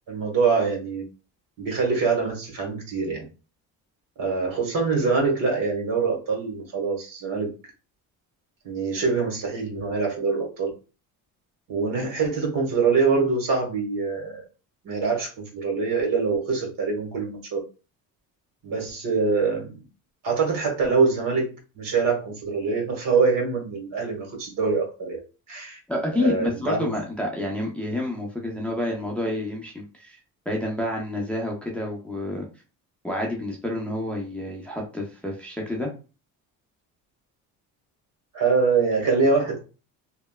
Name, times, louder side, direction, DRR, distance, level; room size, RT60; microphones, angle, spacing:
voice 1, 0.1-1.0 1.6-3.3 4.2-7.5 8.6-10.7 11.7-14.4 14.8-17.6 18.6-19.8 20.2-25.2 25.5-25.8 26.2-26.9 38.3-39.6, right 4 dB, 60° right, 0 dB, 1.4 m, -24 dB
voice 2, 25.9-30.2 30.5-32.4 33.0-35.9, left 1 dB, 5° left, -2 dB, 0.6 m, -29 dB
3.2 x 2.1 x 2.2 m, 0.33 s
cardioid pair, 100°, 37 cm